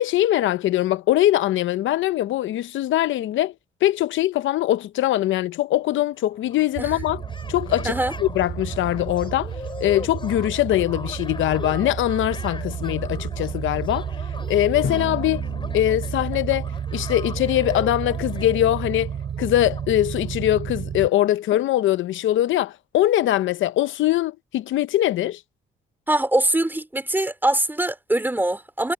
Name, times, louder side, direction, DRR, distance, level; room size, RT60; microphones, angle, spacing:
voice 1, 0.0-3.5 3.8-7.2 7.5-9.5 9.8-14.1 14.5-15.4 15.7-19.1 19.4-25.4, left 13 dB, 75° left, 0.7 m, -22 dB
sound 1, 6.3-20.9, left 3 dB, 25° left, 3.8 m, -40 dB
sound 2, 6.8-21.1, right 8 dB, 55° right, 4.8 m, -31 dB
Drum, 14.8-17.6, left 9 dB, 60° left, 2.2 m, -36 dB
voice 2, 26.1-28.9, right 1 dB, 10° right, 3.1 m, -23 dB
cardioid pair, 90°, 20 cm